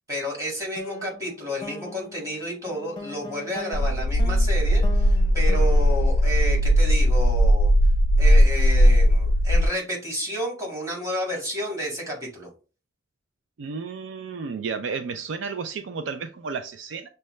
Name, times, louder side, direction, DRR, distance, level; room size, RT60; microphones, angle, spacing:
voice 1, 0.1-7.7 8.2-12.5, equal, 15° right, 1.8 m, -31 dB
sound 1, 0.8-7.2, left 2 dB, 25° left, 0.6 m, -40 dB
sound 2, 3.7-9.7, equal, 70° left, 0.3 m, -18 dB
voice 2, 13.6-17.1, right 5 dB, 65° right, 0.4 m, -32 dB
6.5 x 2.2 x 3.1 m
head